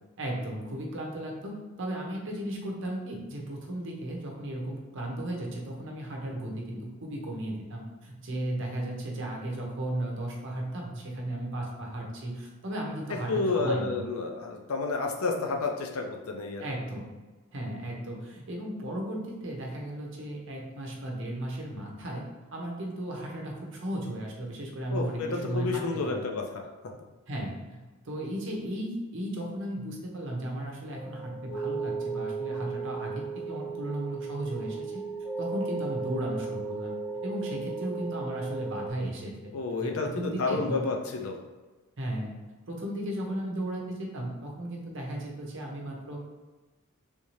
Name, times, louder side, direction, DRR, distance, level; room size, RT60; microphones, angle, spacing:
voice 1, 0.2-14.0 16.6-17.1 17.5-22.2 22.5-26.3 27.3-35.0 35.4-36.9 37.2-39.5 39.8-40.9 42.0-42.4 42.7-46.3, right 1 dB, 60° right, -1 dB, 0.8 m, -35 dB
voice 2, 13.3-16.6 24.9-26.4 39.5-41.3, left 3 dB, 80° left, 3 dB, 0.5 m, -30 dB
sound 1, 30.9-38.9, right 4 dB, 35° left, 1.5 m, -35 dB
3.5 x 2.7 x 3.1 m, 1.2 s
head